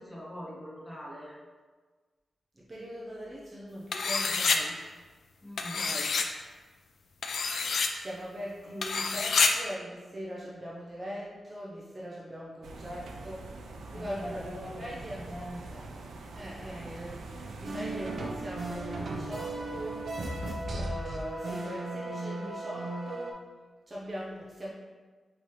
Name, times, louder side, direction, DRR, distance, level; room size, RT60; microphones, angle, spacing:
voice 1, 0.0-1.4 5.4-5.9 8.6-8.7 13.9-15.9 21.3-21.4, equal, 10° left, -6 dB, 1.1 m, -43 dB
voice 2, 2.7-4.8 5.7-6.1 8.0-13.5 13.9-15.2 16.3-17.2 17.6-20.0 20.7-23.3 23.9-24.7, equal, 20° right, -6 dB, 0.6 m, -41 dB
sound 1, 3.9-4.6 5.6-6.3 7.2-7.9 8.8-9.5, left 5 dB, 60° left, 0.4 m, -27 dB
sound 2, 12.6-20.6, right 2 dB, 85° right, 0.4 m, -44 dB
sound 3, 17.6-23.3, right 2 dB, 55° right, 0.7 m, -36 dB
5.2 x 2.9 x 3.2 m, 1.4 s
wide cardioid pair, 145°, 0 cm